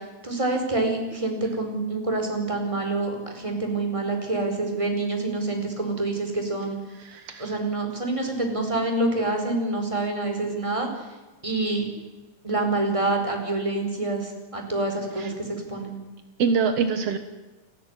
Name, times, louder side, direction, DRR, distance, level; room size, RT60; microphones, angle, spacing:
voice 1, 0.2-6.8 7.4-10.9 11.4-11.8 12.4-16.0, right 2 dB, 5° right, 3 dB, 4.5 m, -27 dB
voice 2, 7.0-7.5 15.2-15.3 16.4-17.2, right 5 dB, 80° right, 8 dB, 1.3 m, -25 dB
30.0 x 12.5 x 9.8 m, 1.2 s
omnidirectional pair, 4.9 m